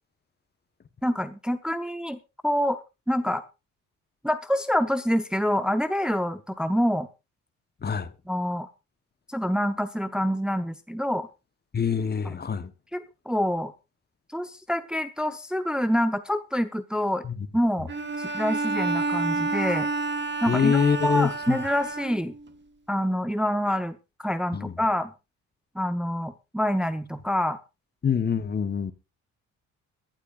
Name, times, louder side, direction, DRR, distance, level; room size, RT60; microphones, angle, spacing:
voice 1, 1.0-2.2 2.4-2.8 3.1-3.4 4.2-7.1 8.3-8.7 9.3-11.3 12.2-12.3 12.9-13.7 14.3-17.3 17.5-17.9 18.2-19.9 20.4-22.3 22.9-25.1 25.7-27.6, equal, 5° right, 0.7 m, -26 dB
voice 2, 11.7-12.7 17.2-17.3 20.5-21.6 24.5-24.7 28.0-28.9, left 6 dB, 35° left, 1.0 m, -25 dB
Bowed string instrument, 17.9-22.5, right 3 dB, 35° right, 1.3 m, -29 dB
21.5 x 11.5 x 2.5 m
cardioid pair, 90°, 30 cm